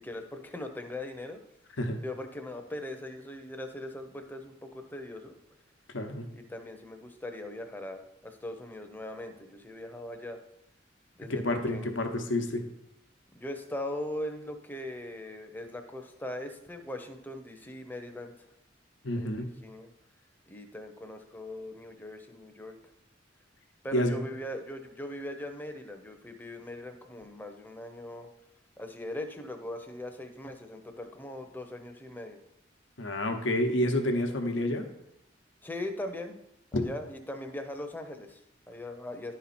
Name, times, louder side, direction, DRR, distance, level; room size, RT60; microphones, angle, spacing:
voice 1, 0.0-1.4 2.0-5.4 6.3-10.4 11.2-11.9 13.3-18.5 19.2-19.9 20.5-22.8 23.8-28.3 28.8-32.4 35.6-36.4 36.7-39.3, left 1 dB, 10° left, 5 dB, 0.6 m, -40 dB
voice 2, 5.9-6.3 11.3-12.7 19.0-19.5 23.9-24.2 33.0-34.9 36.7-36.9, left 1 dB, 85° left, 5 dB, 0.9 m, -29 dB
11.0 x 4.3 x 4.2 m, 0.83 s
head